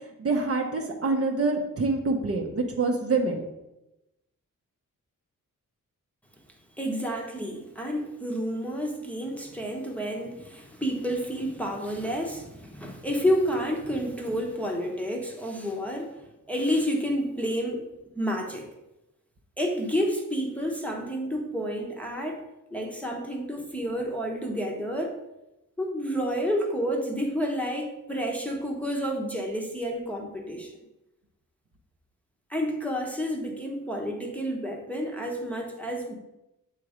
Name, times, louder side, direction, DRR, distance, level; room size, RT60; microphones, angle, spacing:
voice 1, 0.2-3.4, right 3 dB, 45° right, 1 dB, 0.8 m, -26 dB
voice 2, 6.8-17.9 18.2-18.7 19.6-22.4 22.7-25.2 25.8-30.7 32.5-36.1, equal, 5° left, -1 dB, 0.9 m, -30 dB
7.5 x 3.0 x 4.9 m, 0.94 s
wide cardioid pair, 115°, 33 cm